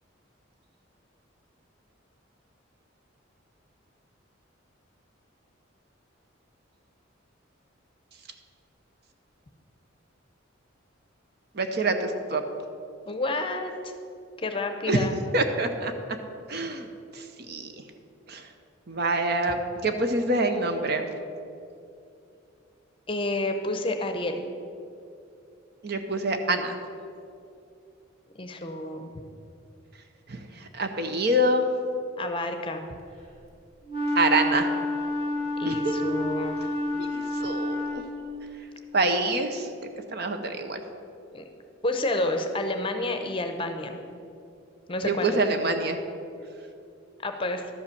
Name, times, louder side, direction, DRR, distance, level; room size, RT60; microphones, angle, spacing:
voice 1, 11.5-12.4 14.9-15.0 15.3-15.9 16.5-16.9 17.1-17.7 18.3-18.5 18.9-21.1 25.8-26.8 30.3-31.7 34.1-34.7 35.6-36.0 37.0-38.0 38.9-39.7 40.1-40.8 45.0-46.0, right 2 dB, 55° right, 6 dB, 0.8 m, -26 dB
voice 2, 13.1-13.9 14.4-15.2 23.1-24.5 28.4-29.1 32.2-32.9 35.6-36.6 41.3-41.4 41.8-44.0 44.9-45.4 47.2-47.6, left 2 dB, 25° left, 6 dB, 0.7 m, -29 dB
Wind instrument woodwind instrument, 33.9-38.4, left 1 dB, 30° right, 1.9 m, -29 dB
12.0 x 5.5 x 7.0 m, 2.6 s
head